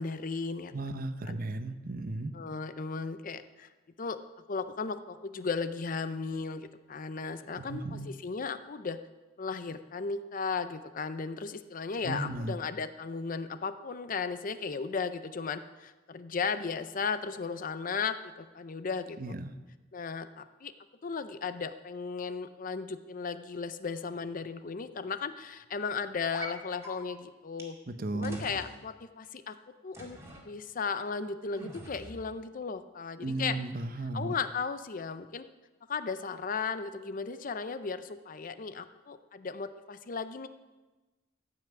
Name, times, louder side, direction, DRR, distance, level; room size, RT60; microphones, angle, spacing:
voice 1, 0.0-0.7 1.3-1.4 2.3-3.7 4.0-4.2 4.5-9.0 9.4-19.3 19.9-20.7 21.0-27.8 28.1-29.6 29.8-30.2 30.4-33.6 34.1-35.4 35.9-40.5, left 5 dB, 45° left, 12 dB, 0.5 m, -35 dB
voice 2, 0.7-2.3 7.6-8.1 12.0-12.6 19.2-19.5 27.9-28.4 33.2-34.3, right 2 dB, 50° right, 10 dB, 0.7 m, -35 dB
sound 1, 26.3-26.5 26.8-26.9 27.6-27.7 28.2-28.7 29.9-30.4 31.6-32.3, right 1 dB, 15° right, 2.2 m, -44 dB
14.5 x 5.8 x 8.0 m, 1.2 s
head